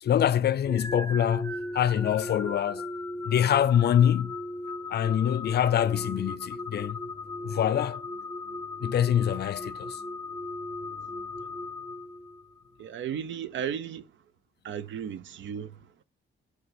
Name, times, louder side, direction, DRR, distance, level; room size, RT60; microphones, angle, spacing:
voice 1, 0.0-2.9 3.2-4.3 4.9-7.0 7.4-8.0 8.8-10.0, left 10 dB, 55° left, 0.5 m, -25 dB
sound 1, 0.6-12.6, left 2 dB, 10° left, 0.7 m, -37 dB
voice 2, 12.8-14.1 14.6-16.0, right 8 dB, 65° right, 0.8 m, -35 dB
9.5 x 3.4 x 6.0 m
cardioid pair, 115°, 21 cm